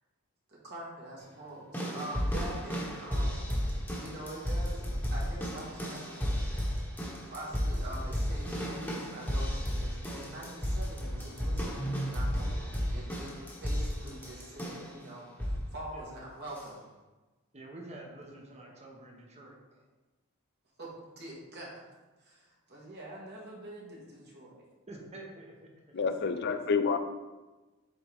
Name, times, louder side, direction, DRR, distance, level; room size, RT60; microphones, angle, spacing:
voice 1, 0.5-3.6 3.9-6.3 7.3-15.3 15.7-16.8 20.8-20.9 21.2-21.8 22.2-24.6 26.0-26.6, right 1 dB, 50° right, -4 dB, 1.8 m, -45 dB
sound 1, 1.7-15.0 15.4-15.8 16.6-16.7, equal, 10° left, 1.3 m, -33 dB
voice 2, 15.9-16.2 17.5-19.8 24.9-25.7, right 2 dB, 30° right, 0 dB, 1.1 m, -48 dB
voice 3, 25.9-27.0, left 5 dB, 55° left, 9 dB, 0.4 m, -28 dB
7.9 x 3.9 x 3.6 m, 1.2 s
head